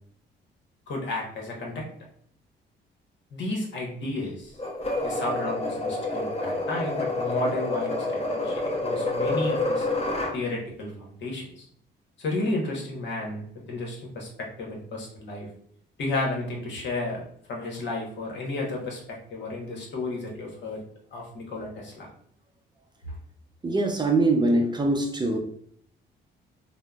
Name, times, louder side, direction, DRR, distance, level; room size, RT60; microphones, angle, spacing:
voice 1, 0.9-1.9 3.3-4.6 5.0-9.9 10.3-11.6 12.2-13.4 13.7-15.5 16.0-17.2 17.5-20.8 21.1-22.1 23.1-23.2, left 2 dB, 65° left, -1 dB, 1.0 m, -32 dB
sound 1, 4.6-10.4, left 2 dB, 30° left, 0.7 m, -28 dB
voice 2, 23.6-25.4, right 2 dB, 20° right, 3 dB, 0.5 m, -23 dB
3.6 x 2.1 x 2.3 m, 0.63 s
cardioid pair, 90°, 20 cm